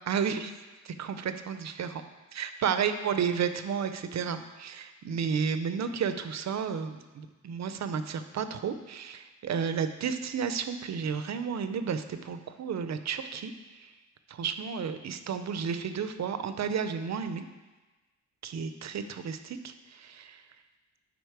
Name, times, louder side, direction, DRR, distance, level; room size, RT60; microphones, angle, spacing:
voice 1, 0.1-0.5 0.8-2.0 2.3-13.5 13.8-13.9 14.3-17.5 18.4-20.4, right 6 dB, 55° right, 10 dB, 0.6 m, -32 dB
8.0 x 5.1 x 4.7 m, 1.2 s
wide cardioid pair, 120°, 32 cm